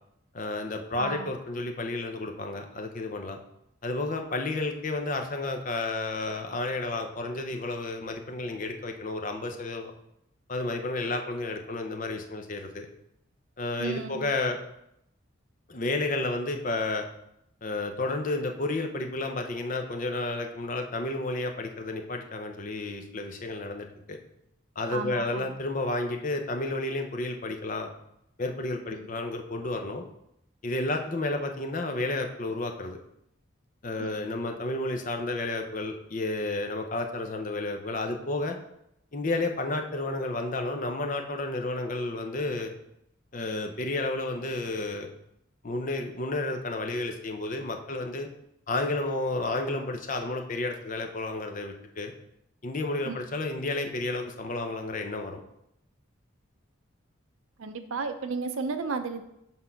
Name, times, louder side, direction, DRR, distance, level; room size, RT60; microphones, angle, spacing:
voice 1, 0.3-3.4 3.8-9.9 10.5-12.9 13.6-14.6 15.7-17.1 17.6-24.2 24.8-27.9 28.4-30.1 30.6-33.0 33.8-38.6 39.1-42.7 43.3-45.1 45.6-48.3 48.7-52.1 52.6-55.4, left 2 dB, 40° left, 4 dB, 0.6 m, -31 dB
voice 2, 1.0-1.3 13.8-14.2 24.9-25.6 28.9-29.1 34.0-34.1 53.0-53.2 57.6-59.2, right 4 dB, 75° right, 8 dB, 0.6 m, -33 dB
5.9 x 3.7 x 5.6 m, 0.79 s
head